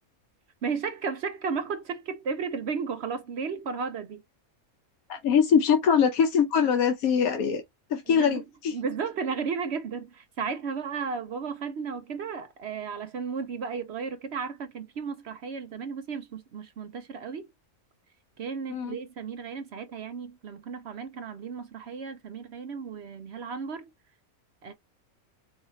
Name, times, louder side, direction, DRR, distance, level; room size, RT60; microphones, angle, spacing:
voice 1, 0.6-4.2 8.1-8.4 8.7-17.5 18.4-23.9 24.6-24.7, right 5 dB, 60° right, 0.7 m, -34 dB
voice 2, 5.1-7.6 7.9-8.8 18.7-19.0, left 7 dB, 80° left, 1.2 m, -23 dB
4.7 x 2.4 x 3.1 m
omnidirectional pair, 1.5 m